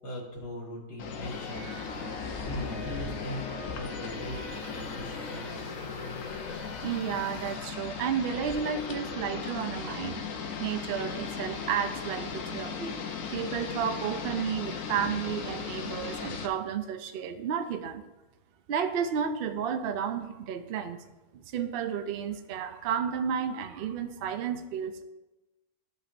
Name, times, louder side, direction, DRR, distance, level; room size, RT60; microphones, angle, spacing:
voice 1, 0.0-1.7 1.9-5.6, equal, 80° left, -4 dB, 2.2 m, -40 dB
sound 1, 1.0-16.5, left 6 dB, 65° left, 1.1 m, -37 dB
sound 2, 1.2-7.6, equal, 5° left, 2.1 m, -45 dB
voice 2, 6.8-10.2 10.6-12.9 13.3-18.0 18.7-21.0 21.3-25.0, right 8 dB, 80° right, 9 dB, 0.5 m, -32 dB
13.0 x 5.4 x 2.6 m, 1.1 s
omnidirectional pair, 1.7 m